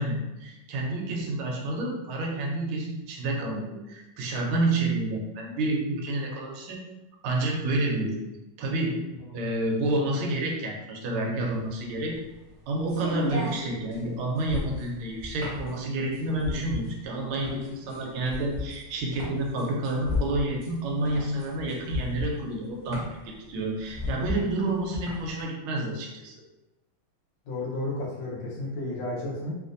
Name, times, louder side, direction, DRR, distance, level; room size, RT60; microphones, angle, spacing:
voice 1, 0.0-6.8 7.2-8.2 8.6-9.0 9.3-12.2 12.7-23.0 23.5-26.3, right 2 dB, 75° right, -1 dB, 1.5 m, -29 dB
sound 1, 11.5-25.4, left 2 dB, 45° right, 0.7 m, -35 dB
voice 2, 27.4-29.6, left 2 dB, 65° left, -5 dB, 1.5 m, -33 dB
3.6 x 2.5 x 2.5 m, 1.0 s
omnidirectional pair, 2.4 m